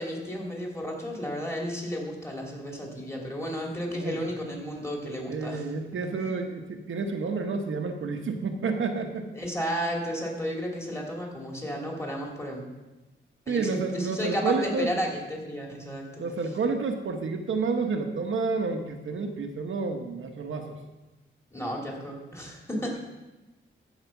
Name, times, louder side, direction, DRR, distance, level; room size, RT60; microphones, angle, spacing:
voice 1, 0.0-5.7 6.2-6.3 9.3-12.6 13.5-16.3 21.5-23.0, equal, 15° left, -1 dB, 2.9 m, -33 dB
voice 2, 5.3-9.3 13.5-14.9 16.2-20.8, right 4 dB, 70° right, 4 dB, 1.1 m, -30 dB
14.5 x 5.0 x 5.8 m, 1.1 s
cardioid pair, 90°, 21 cm